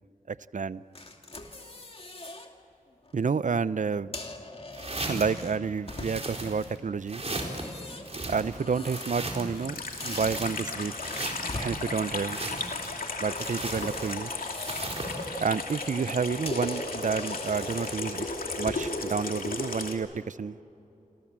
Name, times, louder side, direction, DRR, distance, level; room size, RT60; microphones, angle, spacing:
voice 1, 0.3-0.8 3.1-4.1 5.1-7.2 8.3-10.9 11.6-12.4 13.2-14.3 15.4-18.3 18.6-20.6, right 5 dB, 60° right, 17 dB, 0.6 m, -30 dB
sound 1, 1.0-2.5 2.9-3.2 3.9-6.5 7.2-9.7 10.0-11.8 13.2-15.0 15.4-15.7 16.1-16.2 16.5-19.0, left 2 dB, 40° left, 2.5 m, -42 dB
sound 2, 4.7-5.4 5.9-6.8 7.1-7.7 8.0-9.6 9.9-10.7 11.0-11.7 12.2-13.0 13.3-14.3 14.7-15.3, right 2 dB, 45° right, 4.2 m, -37 dB
Water tap faucet / Sink (filling or washing), 9.6-20.0, left 3 dB, 85° left, 2.7 m, -35 dB
28.0 x 26.0 x 7.5 m, 2.8 s
wide cardioid pair, 65°, 14 cm